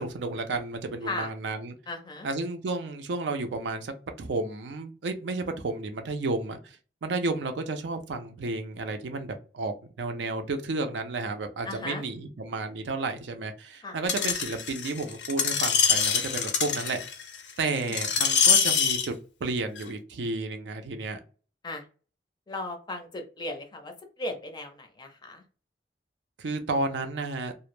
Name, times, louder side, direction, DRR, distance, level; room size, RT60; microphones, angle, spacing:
voice 1, 0.0-1.8 2.2-17.0 17.6-19.1 19.4-21.2 26.4-27.5, right 3 dB, 80° right, 6 dB, 0.4 m, -32 dB
voice 2, 1.9-2.3 11.7-12.0 13.8-14.0 17.8-17.9 21.6-21.8 22.5-23.9 24.2-25.4, left 2 dB, 25° left, 5 dB, 0.4 m, -36 dB
Screech, 14.1-19.1 19.8-19.9, left 7 dB, 75° left, 0.5 m, -24 dB
2.1 x 2.0 x 3.0 m, 0.37 s
head